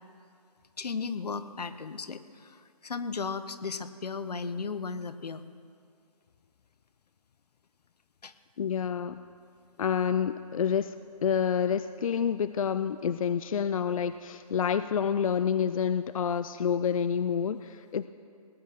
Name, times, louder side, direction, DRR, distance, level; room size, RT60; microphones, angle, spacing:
voice 1, 0.8-5.4 8.2-8.3, left 5 dB, 85° left, 13 dB, 0.9 m, -35 dB
voice 2, 8.6-9.2 9.8-10.9 11.2-18.1, left 7 dB, 60° left, 12 dB, 0.4 m, -28 dB
18.5 x 8.8 x 7.6 m, 2.3 s
hypercardioid pair, 160°, 20 cm